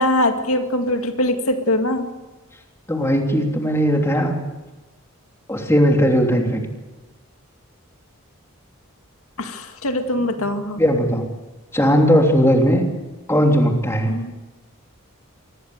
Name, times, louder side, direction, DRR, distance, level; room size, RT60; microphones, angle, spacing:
voice 1, 0.0-2.1 9.4-10.8 14.1-14.3, left 1 dB, 85° left, 6 dB, 2.2 m, -22 dB
voice 2, 2.9-4.4 5.5-6.6 10.8-11.2 11.7-12.8 13.3-14.1, equal, 10° left, 2 dB, 3.2 m, -17 dB
25.5 x 20.5 x 8.0 m, 1.1 s
head